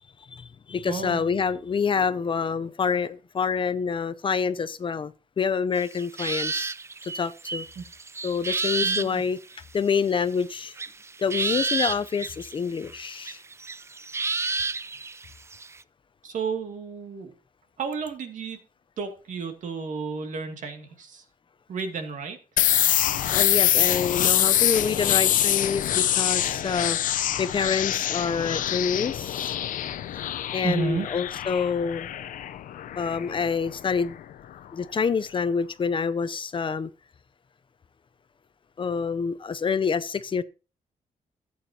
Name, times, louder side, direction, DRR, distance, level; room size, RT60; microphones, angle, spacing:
voice 1, 0.3-6.7 7.1-7.7 8.2-9.4 9.7-10.7 11.2-13.4 23.3-29.5 30.5-32.1 33.0-34.2 34.7-36.9 38.8-40.4, left 6 dB, 40° left, 0.6 m, -27 dB
voice 2, 0.9-1.3 7.8-7.9 8.8-9.2 16.2-17.3 17.8-18.6 19.0-21.2 21.7-22.4 30.6-31.1, right 5 dB, 70° right, 2.2 m, -32 dB
sound 1, 5.8-9.1 9.5-9.6 10.8-12.6 12.9-15.8, right 4 dB, 20° right, 0.4 m, -30 dB
sound 2, 22.6-34.2, left 11 dB, 90° left, 0.7 m, -25 dB
14.0 x 8.6 x 2.8 m
cardioid pair, 110°, 13 cm